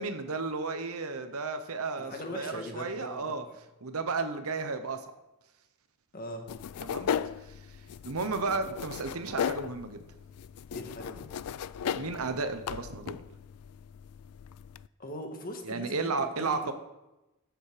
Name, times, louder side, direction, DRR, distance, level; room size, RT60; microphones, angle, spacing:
voice 1, 0.0-3.4 3.8-5.1 6.8-7.1 7.4-10.0 11.8-13.2 15.6-16.7, right 4 dB, 80° right, 8 dB, 0.9 m, -33 dB
voice 2, 2.0-3.5 6.1-6.5 10.7-11.2 15.0-16.7, left 1 dB, 40° left, 3 dB, 1.7 m, -41 dB
sound 1, 6.5-14.9, left 8 dB, 90° left, 0.4 m, -37 dB
14.0 x 7.2 x 5.0 m, 0.99 s
head